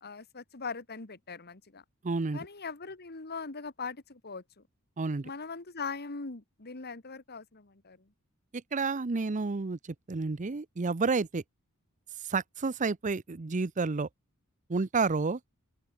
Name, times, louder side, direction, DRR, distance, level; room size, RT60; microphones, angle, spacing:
voice 1, 0.0-1.8 2.3-4.4 5.2-8.1, left 4 dB, 50° left, 1.8 m, -40 dB
voice 2, 2.0-2.5 5.0-5.3 8.5-11.4 12.2-14.1 14.7-15.4, right 4 dB, 35° right, 0.6 m, -30 dB
open air
head